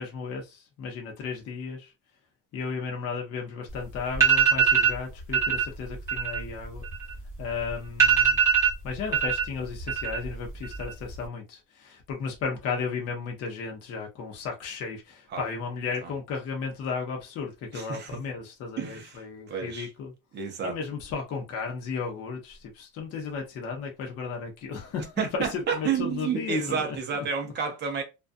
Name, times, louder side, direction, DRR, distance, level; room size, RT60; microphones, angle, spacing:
voice 1, 0.0-1.9 2.5-6.8 7.4-8.4 8.8-20.1 20.6-27.0, left 5 dB, 35° left, 0.7 m, -34 dB
sound 1, 3.7-3.8 4.1-5.0 5.3-5.6 6.0-7.4 7.7-7.8 8.0-9.4 9.7-10.3 10.6-11.2, right 7 dB, 5° right, 0.8 m, -22 dB
voice 2, 17.7-18.1 18.8-19.2 19.5-19.9 20.3-20.8 25.2-28.0, right 6 dB, 25° right, 0.5 m, -30 dB
2.5 x 2.2 x 2.5 m
cardioid pair, 170°, 42 cm